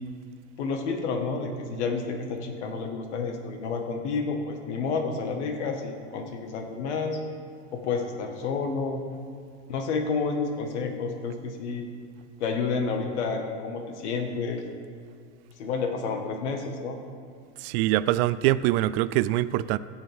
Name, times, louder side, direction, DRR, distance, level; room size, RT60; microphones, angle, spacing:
voice 1, 0.6-7.2 7.7-9.0 9.7-11.9 12.4-14.6 15.6-17.0, left 4 dB, 85° left, 4 dB, 1.5 m, -30 dB
voice 2, 17.6-19.8, right 15 dB, 65° right, 14 dB, 0.4 m, -24 dB
16.0 x 8.9 x 3.5 m, 2.3 s
supercardioid pair, 135°, 34 cm